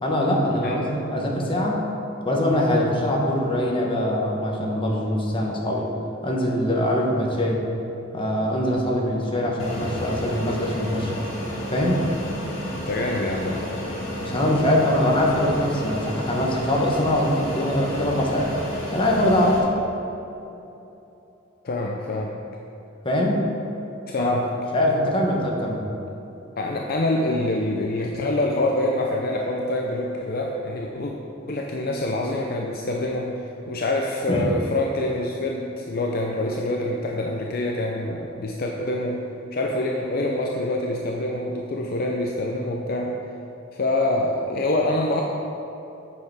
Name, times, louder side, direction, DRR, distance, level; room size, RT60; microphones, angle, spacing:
voice 1, 0.0-1.8 2.2-5.9 6.2-7.6 8.1-11.2 11.7-12.1 14.2-18.5 18.9-19.6 23.0-23.5 24.2-24.4 24.7-25.8 34.3-34.5, left 1 dB, 25° left, -2 dB, 1.2 m, -23 dB
Fixed-wing aircraft airplane, 9.6-19.6, equal, 70° left, 1.8 m, -32 dB
voice 2, 12.8-13.7 21.6-22.3 24.1-24.5 26.6-31.1 31.5-33.3 33.7-39.2 39.5-43.1 43.7-45.2, left 1 dB, 50° left, 0 dB, 0.6 m, -25 dB
8.4 x 6.6 x 4.8 m, 3.0 s
head